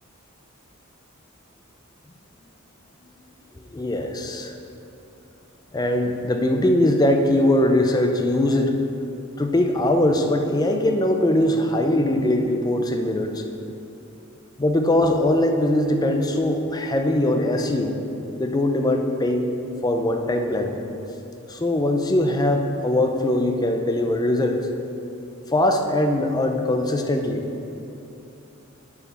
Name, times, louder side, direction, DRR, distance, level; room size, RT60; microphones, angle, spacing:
voice 1, 3.7-4.5 5.7-8.8 9.4-13.4 14.6-18.0 18.4-20.8 21.5-24.7 25.5-27.5, left 1 dB, 20° left, 4 dB, 0.4 m, -21 dB
9.7 x 4.8 x 4.3 m, 2.8 s
head